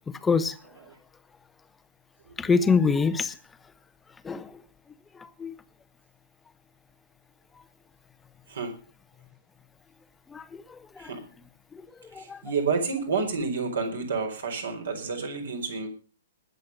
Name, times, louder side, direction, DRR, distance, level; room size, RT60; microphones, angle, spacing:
voice 1, 0.2-0.5 2.4-3.3 4.2-4.5 5.4-5.5 10.3-10.6 11.0-11.1 12.1-12.4, left 5 dB, 10° left, 14 dB, 0.9 m, -24 dB
voice 2, 2.2-2.7 8.5-8.7 11.0-11.2 12.1-15.9, right 4 dB, 60° right, 4 dB, 4.6 m, -30 dB
20.5 x 7.9 x 5.3 m, 0.36 s
figure-of-eight pair, 115°, 0 cm